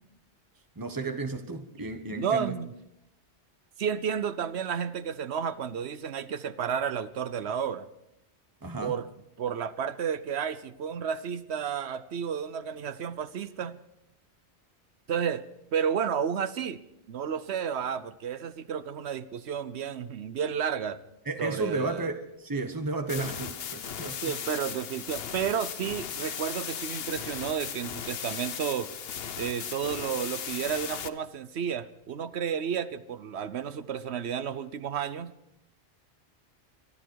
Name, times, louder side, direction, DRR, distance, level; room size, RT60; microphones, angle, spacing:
voice 1, 0.8-2.5 8.6-8.9 21.3-24.3, right 3 dB, 20° right, 1.1 m, -33 dB
voice 2, 2.1-2.7 3.8-7.9 8.8-9.1 9.4-13.8 15.1-15.5 15.7-16.8 17.1-21.0 21.4-22.1 24.2-28.9 29.4-35.3, right 7 dB, 70° right, 1.0 m, -32 dB
sound 1, 23.1-31.1, left 8 dB, 60° left, 1.0 m, -37 dB
24.0 x 12.5 x 4.7 m
omnidirectional pair, 1.1 m